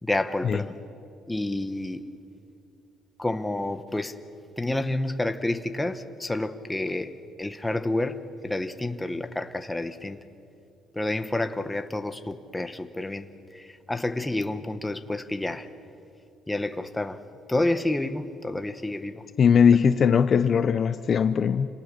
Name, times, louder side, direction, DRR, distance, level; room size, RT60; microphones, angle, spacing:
voice 1, 0.0-0.8 1.3-2.0 3.2-4.2 4.6-10.2 10.9-15.7 16.5-17.2 17.5-19.2 19.7-19.8, left 2 dB, 5° left, 8 dB, 0.9 m, -29 dB
voice 2, 19.4-21.7, left 7 dB, 35° left, 11 dB, 0.6 m, -20 dB
29.0 x 27.5 x 6.6 m, 2.6 s
cardioid pair, 165°, 0 cm